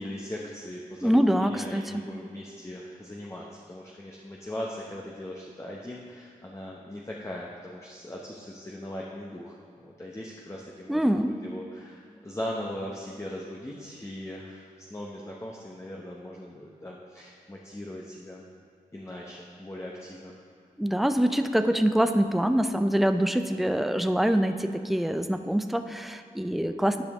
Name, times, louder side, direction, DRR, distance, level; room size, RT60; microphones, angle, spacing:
voice 1, 0.0-18.5 18.9-20.4, left 1 dB, 20° left, -3 dB, 0.9 m, -39 dB
voice 2, 1.0-1.9 10.9-11.4 20.8-27.0, equal, ahead, 8 dB, 0.5 m, -24 dB
10.0 x 5.1 x 3.6 m, 2.3 s
cardioid pair, 40°, 15 cm